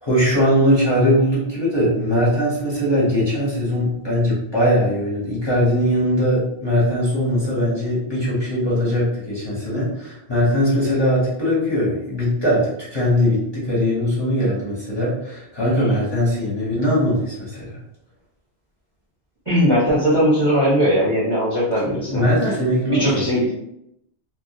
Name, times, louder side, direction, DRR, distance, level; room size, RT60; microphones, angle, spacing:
voice 1, 0.0-17.8 21.8-23.2, equal, 25° left, -8 dB, 0.7 m, -20 dB
voice 2, 19.5-22.2 22.9-23.5, equal, 30° right, -7 dB, 0.6 m, -19 dB
2.1 x 2.1 x 2.7 m, 0.79 s
omnidirectional pair, 1.2 m